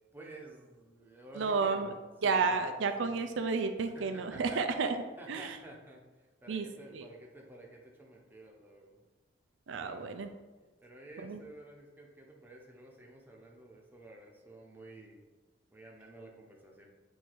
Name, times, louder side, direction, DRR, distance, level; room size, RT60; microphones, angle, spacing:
voice 1, 0.1-2.6 3.0-3.1 3.9-4.6 5.2-9.0 9.8-10.1 10.8-15.2 15.7-16.8, right 1 dB, 10° right, -1 dB, 0.8 m, -51 dB
voice 2, 1.4-1.9 2.2-5.6 6.5-6.7 6.9-7.1 9.7-10.3 11.2-11.4, right 4 dB, 80° right, 7 dB, 0.5 m, -31 dB
7.6 x 2.7 x 4.6 m, 1.2 s
head